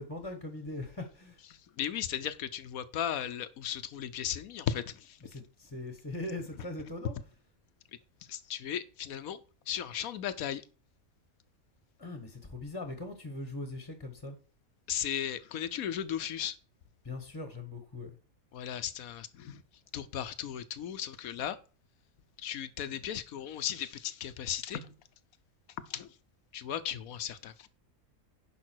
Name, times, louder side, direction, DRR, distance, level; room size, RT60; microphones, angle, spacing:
voice 1, 0.0-1.4 5.2-7.1 12.0-14.3 17.0-18.1, left 2 dB, 15° left, 1.2 m, -40 dB
voice 2, 1.8-5.2 8.3-9.4 9.7-10.6 14.9-16.5 18.5-19.6 19.9-21.6 22.4-24.9 25.9-26.1 26.5-27.7, left 9 dB, 75° left, 1.2 m, -36 dB
10.5 x 5.5 x 4.5 m
omnidirectional pair, 1.5 m